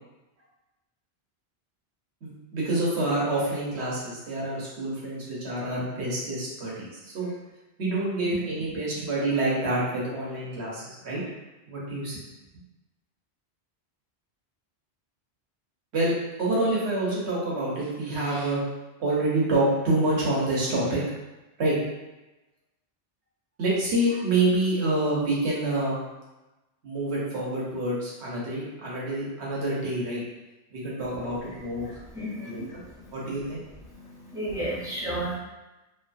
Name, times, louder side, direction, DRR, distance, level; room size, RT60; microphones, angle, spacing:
voice 1, 2.2-7.3 7.8-11.2 11.7-12.2 15.9-16.1 16.4-18.6 19.0-21.0 21.6-21.7 23.6-26.0 26.8-30.2 30.7-31.9 32.4-32.8 33.1-33.6, right 2 dB, 75° right, -6 dB, 1.1 m, -27 dB
voice 2, 31.8-33.4 33.9-35.4, right 1 dB, 5° right, -7 dB, 0.5 m, -34 dB
2.8 x 2.2 x 2.5 m, 1.0 s
omnidirectional pair, 1.1 m